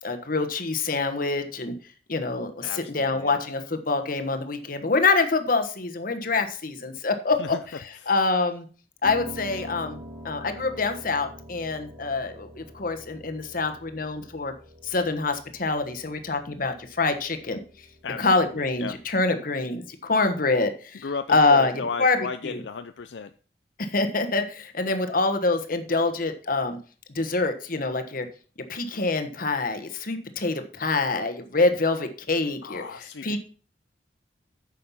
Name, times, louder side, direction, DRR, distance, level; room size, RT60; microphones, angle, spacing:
voice 1, 0.0-1.7 2.1-7.5 8.1-8.7 9.0-14.5 14.8-17.6 18.2-22.2 22.4-22.6 23.8-26.8 27.1-28.3 28.7-32.8 33.2-33.4, left 3 dB, 50° left, 7 dB, 1.4 m, -25 dB
voice 2, 2.6-3.4 7.4-7.6 8.0-8.1 18.0-18.9 21.0-23.3 32.6-33.4, left 5 dB, 75° left, 9 dB, 0.5 m, -35 dB
Piano, 9.0-19.1, equal, 55° right, 4.8 m, -45 dB
9.5 x 6.6 x 5.7 m, 0.39 s
head